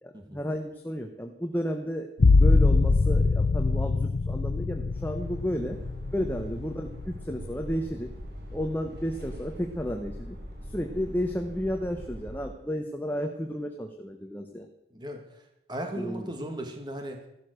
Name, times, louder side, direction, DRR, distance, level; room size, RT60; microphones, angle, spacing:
voice 1, 0.0-2.1 2.4-5.8 6.1-8.1 8.5-10.4 10.7-14.7 16.0-16.3, equal, 10° left, 3 dB, 1.1 m, -32 dB
sound 1, 2.2-7.7 8.1-8.7, left 3 dB, 65° left, 0.5 m, -24 dB
sound 2, 4.9-12.5, equal, 70° right, 4.9 m, -41 dB
voice 2, 14.9-15.2 15.7-17.2, right 1 dB, 25° right, 4 dB, 2.1 m, -37 dB
15.5 x 12.5 x 6.5 m, 0.84 s
head